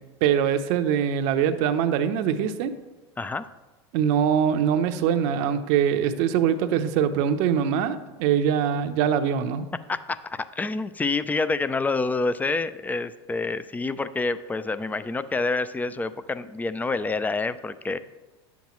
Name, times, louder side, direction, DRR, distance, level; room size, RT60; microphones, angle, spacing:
voice 1, 0.2-2.7 3.9-9.6, right 8 dB, 60° right, 10 dB, 0.7 m, -23 dB
voice 2, 3.2-3.5 9.9-18.0, left 3 dB, 10° left, 14 dB, 0.4 m, -27 dB
10.0 x 7.1 x 3.1 m, 1.2 s
hypercardioid pair, 100°, 14 cm